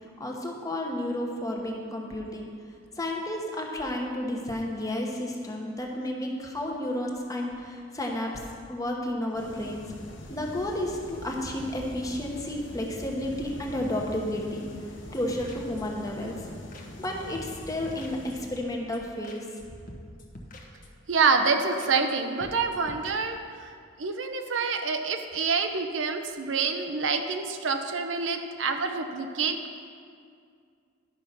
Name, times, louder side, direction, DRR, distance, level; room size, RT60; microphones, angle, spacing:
voice 1, 0.2-2.5 3.0-8.3 8.7-9.8 10.2-14.7 15.1-16.4 17.0-19.4, left 1 dB, 20° left, 0 dB, 1.1 m, -32 dB
sound 1, 9.3-18.5, equal, 75° left, 1.1 m, -44 dB
sound 2, 15.0-16.1 16.4-16.5 16.7-17.1 17.3-18.6 18.9-19.0 19.2-19.6 19.9-21.1 21.4-21.5 21.8-22.1 22.4-23.1, left 1 dB, 45° left, 1.0 m, -47 dB
voice 2, 21.1-23.4 24.0-29.8, right 4 dB, 85° right, 6 dB, 0.7 m, -27 dB
11.0 x 5.3 x 6.0 m, 2.2 s
head